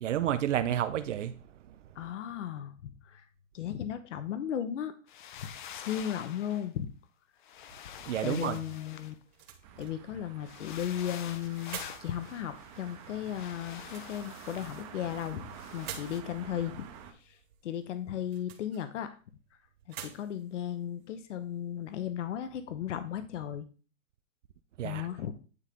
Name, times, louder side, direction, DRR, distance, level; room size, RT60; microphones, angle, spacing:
voice 1, 0.0-1.4 8.1-8.6 24.8-25.1, right 11 dB, 65° right, 0.6 m, -30 dB
voice 2, 2.0-2.7 3.0-3.2 3.5-4.9 5.7-6.9 8.2-9.1 9.8-16.7 17.3-17.4 17.6-19.1 19.9-23.7 24.8-25.3, left 10 dB, 65° left, 1.0 m, -35 dB
sound 1, 5.1-6.7 7.4-9.6 10.4-16.2, left 9 dB, 40° left, 0.6 m, -47 dB
sound 2, 9.1-22.0, right 9 dB, 50° right, 1.6 m, -51 dB
sound 3, 9.6-17.1, right 8 dB, 25° right, 0.8 m, -49 dB
9.8 x 3.7 x 3.6 m
hypercardioid pair, 150°, 40 cm